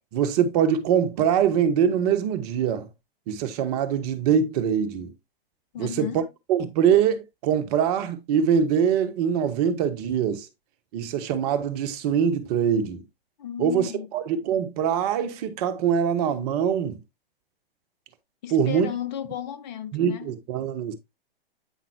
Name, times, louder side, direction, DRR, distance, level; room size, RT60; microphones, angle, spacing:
voice 1, 0.1-2.9 3.3-5.1 5.8-6.1 6.5-10.5 10.9-13.0 13.6-17.0 18.5-18.9 19.9-20.9, right 8 dB, 40° right, 1.4 m, -23 dB
voice 2, 5.7-6.2 13.4-14.1 18.4-20.4, left 10 dB, 45° left, 1.8 m, -34 dB
9.2 x 5.8 x 2.9 m
hypercardioid pair, 120°, 30 cm